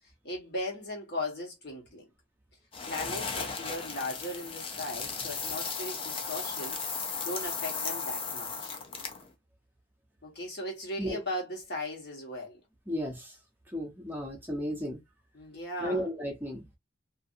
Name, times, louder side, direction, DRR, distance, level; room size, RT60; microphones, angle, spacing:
voice 1, 0.2-2.0 2.9-6.8 7.2-8.8 10.2-12.6 15.3-16.1, left 1 dB, 60° left, 1.3 m, -37 dB
sound 1, 2.7-9.3, left 5 dB, 30° left, 0.5 m, -36 dB
voice 2, 12.9-13.4 13.7-15.0 15.8-16.7, equal, 10° right, 0.7 m, -34 dB
2.6 x 2.6 x 2.6 m
head